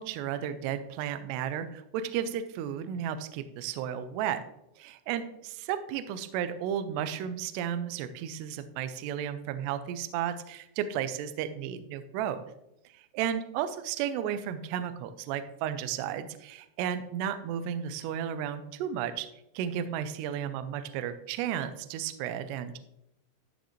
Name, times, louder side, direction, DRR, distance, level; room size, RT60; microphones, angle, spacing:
voice 1, 0.0-4.4 4.8-5.2 5.7-12.4 12.9-19.3 19.5-22.8, right 9 dB, 80° right, 10 dB, 2.4 m, -33 dB
13.5 x 6.4 x 3.1 m, 0.83 s
omnidirectional pair, 5.6 m